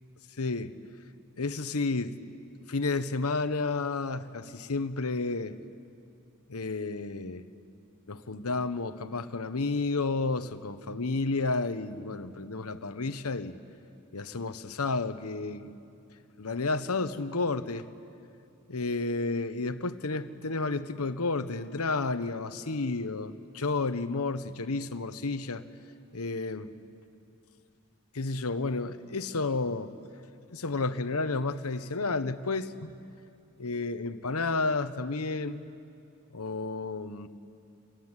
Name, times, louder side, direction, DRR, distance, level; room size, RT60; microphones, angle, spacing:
voice 1, 0.4-0.7 1.4-2.2 2.7-5.6 6.5-7.4 8.1-13.6 14.1-15.8 16.4-17.9 18.7-25.6 26.1-26.7 28.1-29.9 30.5-33.0 33.6-35.7 36.3-37.3, left 3 dB, 80° left, 11 dB, 1.1 m, -31 dB
27.0 x 22.5 x 9.8 m, 2.6 s
head